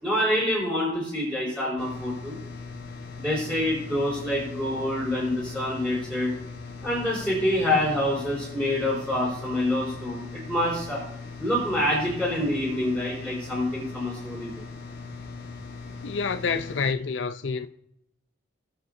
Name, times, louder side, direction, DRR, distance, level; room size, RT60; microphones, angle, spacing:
voice 1, 0.0-2.4 3.2-6.3 6.8-11.0 11.4-14.6, left 1 dB, 10° right, 4.3 m, -26 dB
sound 1, 1.8-16.9, left 4 dB, 60° left, 1.3 m, -40 dB
voice 2, 16.0-17.7, left 5 dB, 75° left, 0.5 m, -28 dB
19.0 x 7.6 x 2.6 m
head